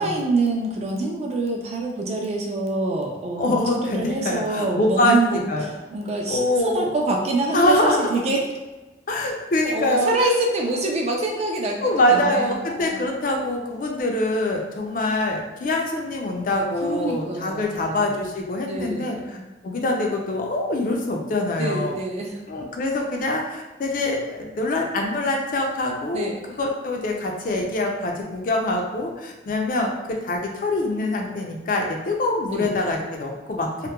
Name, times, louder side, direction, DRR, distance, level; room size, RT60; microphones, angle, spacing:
voice 1, 0.0-8.4 9.6-13.0 16.8-18.1 18.7-19.5 21.5-22.4 26.1-26.4 32.5-32.7, right 2 dB, 35° right, 0 dB, 0.4 m, -26 dB
voice 2, 3.4-5.2 5.5-5.7 6.3-6.9 7.5-8.1 9.1-10.1 11.8-19.4 19.6-22.0 22.5-26.3 26.6-33.7, left 1 dB, 45° left, 1 dB, 0.4 m, -24 dB
2.8 x 2.1 x 2.2 m, 1.2 s
head